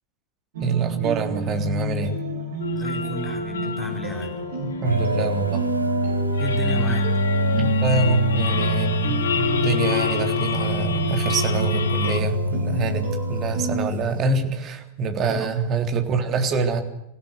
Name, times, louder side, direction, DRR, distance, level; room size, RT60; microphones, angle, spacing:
sound 1, 0.5-13.9, right 2 dB, 55° right, 7.5 m, -30 dB
voice 1, 0.6-2.1 4.6-5.6 7.6-13.0 13.3-16.8, right 4 dB, 30° right, 7 dB, 3.5 m, -25 dB
sound 2, 2.6-12.2, left 8 dB, 65° left, 1.6 m, -30 dB
voice 2, 2.7-4.3 6.4-7.0 15.3-15.5, left 1 dB, 10° left, 3 dB, 4.7 m, -32 dB
sound 3, 4.8-14.4, equal, 85° right, 1.0 m, -25 dB
25.5 x 16.5 x 8.1 m, 0.83 s
figure-of-eight pair, 90°, 0 cm